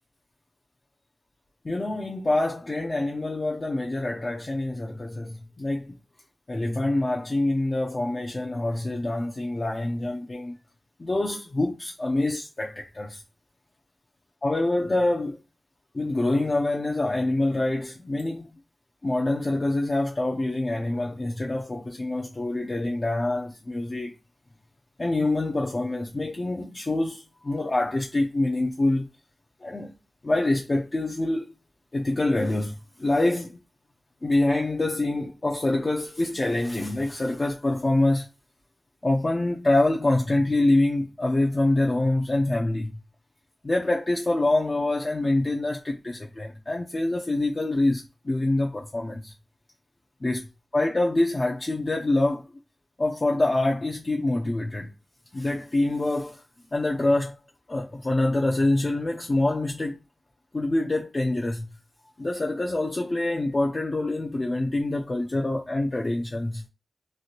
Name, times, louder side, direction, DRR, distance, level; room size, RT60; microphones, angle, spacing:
voice 1, 1.6-6.0 6.5-10.6 11.0-13.2 14.4-15.4 15.9-18.5 19.0-24.1 25.0-29.1 29.6-29.9 30.2-31.5 31.9-33.6 34.2-38.3 39.0-43.0 43.6-49.3 50.2-50.5 50.7-52.5 53.0-54.9 55.3-56.4 56.7-57.4 57.7-60.0 60.5-61.7 62.2-66.6, left 2 dB, 40° left, 0.4 m, -25 dB
3.0 x 2.5 x 2.8 m
wide cardioid pair, 85°, 0 cm